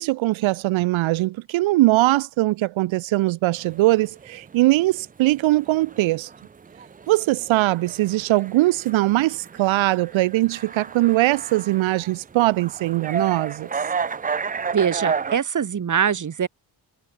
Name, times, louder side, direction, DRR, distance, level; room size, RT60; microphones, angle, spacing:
voice 1, 0.0-6.3 7.1-13.7, right 18 dB, 80° right, 0.6 m, -21 dB
sound 1, 3.6-15.4, right 6 dB, 20° right, 0.4 m, -32 dB
voice 2, 14.7-16.5, right 7 dB, 40° right, 1.3 m, -23 dB
cardioid pair, 75°, 46 cm